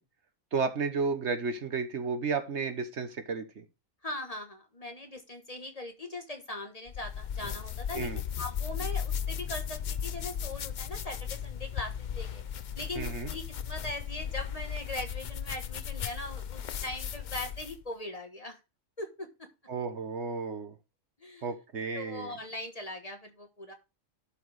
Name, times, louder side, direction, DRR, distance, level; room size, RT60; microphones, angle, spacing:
voice 1, 0.5-3.6 7.9-8.2 12.9-13.3 19.7-20.8 21.4-22.4, right 4 dB, 60° right, 9 dB, 1.3 m, -32 dB
voice 2, 4.0-8.1 8.4-12.4 12.7-18.6 19.0-19.5 21.2-21.5 21.9-23.7, left 2 dB, 30° left, 5 dB, 1.2 m, -40 dB
sound 1, 6.9-17.8, left 8 dB, 55° left, 0.5 m, -36 dB
11.5 x 4.7 x 4.8 m, 0.28 s
omnidirectional pair, 1.3 m